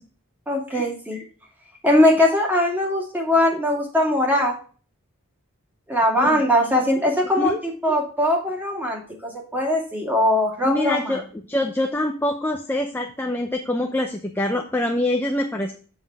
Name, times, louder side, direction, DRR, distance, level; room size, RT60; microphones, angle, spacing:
voice 1, 0.5-1.2 1.8-4.5 5.9-11.2, left 1 dB, 10° right, 0 dB, 2.3 m, -21 dB
voice 2, 10.6-15.7, left 1 dB, 10° left, 3 dB, 0.6 m, -25 dB
7.4 x 7.3 x 3.4 m, 0.40 s
head